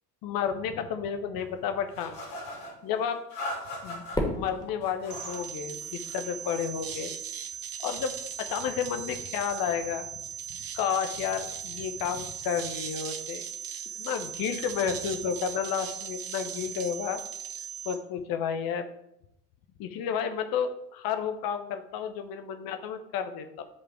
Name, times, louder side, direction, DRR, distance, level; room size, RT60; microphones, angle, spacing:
voice 1, 0.2-2.2 2.8-3.2 3.8-7.1 7.8-10.1 10.7-13.4 14.0-17.2 17.8-18.9 19.8-23.6, left 7 dB, 50° left, 8 dB, 1.1 m, -31 dB
sound 1, 1.9-2.7 3.3-4.2 4.8-5.4 5.8-6.4, left 1 dB, 65° left, 3.2 m, -39 dB
Fireworks, 4.1-6.5, left 1 dB, 10° left, 2.6 m, -35 dB
sound 2, 5.1-18.0, right 8 dB, 45° right, 1.2 m, -38 dB
10.5 x 5.2 x 4.7 m, 0.81 s
figure-of-eight pair, 55°, 47 cm